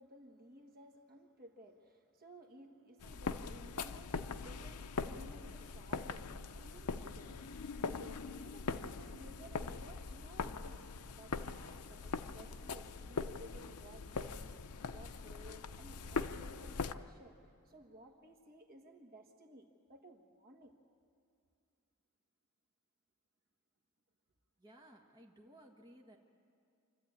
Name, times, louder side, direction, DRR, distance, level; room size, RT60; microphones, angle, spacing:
voice 1, 0.0-14.6 14.9-17.4 17.6-20.7, right 1 dB, 40° right, 2 dB, 1.6 m, -57 dB
Alarm, 2.3-11.2, right 4 dB, 25° left, 7.8 m, -69 dB
sound 1, 3.0-16.9, left 4 dB, 80° left, 0.6 m, -42 dB
voice 2, 24.6-26.2, right 1 dB, 20° right, -1 dB, 1.5 m, -59 dB
26.5 x 12.5 x 8.8 m, 2.4 s
head